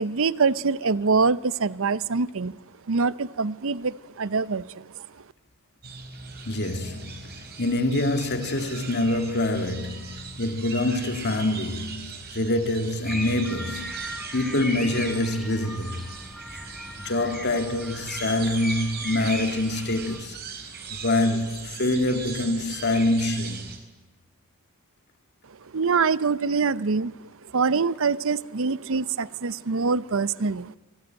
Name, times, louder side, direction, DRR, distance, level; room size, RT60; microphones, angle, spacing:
voice 1, 0.0-2.6 2.9-4.8 25.7-27.1 27.5-30.7, right 4 dB, 65° right, 0.7 m, -24 dB
sound 1, 5.8-23.8, right 5 dB, 50° right, 4.3 m, -40 dB
voice 2, 6.5-14.0 14.3-16.1 17.0-20.4 20.9-23.8, left 1 dB, 50° left, 2.0 m, -26 dB
sound 2, 13.0-20.2, equal, ahead, 3.8 m, -37 dB
26.5 x 19.0 x 9.1 m
head